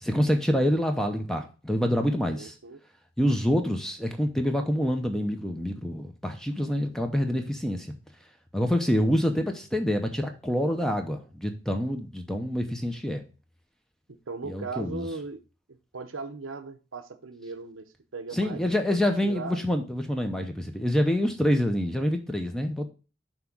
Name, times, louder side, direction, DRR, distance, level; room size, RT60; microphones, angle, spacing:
voice 1, 0.0-2.6 3.2-7.9 8.5-13.2 14.4-15.1 18.3-22.9, equal, 5° left, 0.7 m, -26 dB
voice 2, 2.3-2.8 14.3-15.4 15.9-17.9 18.1-18.6 18.9-19.6, right 4 dB, 85° right, 0.8 m, -37 dB
5.8 x 3.5 x 5.9 m
head